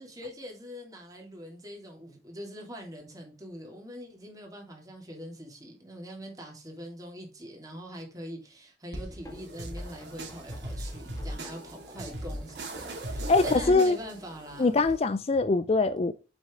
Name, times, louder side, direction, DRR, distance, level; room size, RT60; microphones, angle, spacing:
voice 1, 0.0-14.8, equal, 20° right, 2.8 m, -43 dB
sound 1, 8.9-14.9, right 1 dB, 85° right, 2.4 m, -38 dB
sound 2, 9.1-14.6, equal, 20° left, 2.1 m, -51 dB
voice 2, 13.3-14.0 14.6-16.1, left 3 dB, 35° left, 0.4 m, -23 dB
7.4 x 6.2 x 3.7 m
head